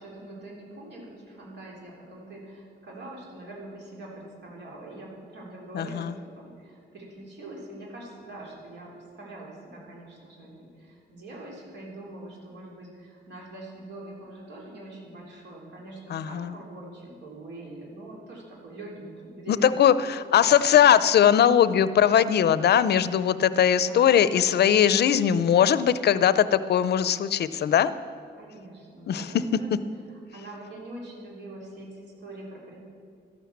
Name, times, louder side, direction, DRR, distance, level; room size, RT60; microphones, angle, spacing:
voice 1, 0.0-20.0 23.8-24.6 28.3-29.7 30.3-32.8, right 1 dB, 70° right, -3 dB, 3.5 m, -43 dB
voice 2, 5.7-6.1 16.1-16.5 19.5-27.9 29.1-29.3, left 9 dB, 65° left, 15 dB, 0.6 m, -20 dB
13.0 x 12.0 x 7.2 m, 2.4 s
wide cardioid pair, 150°, 19 cm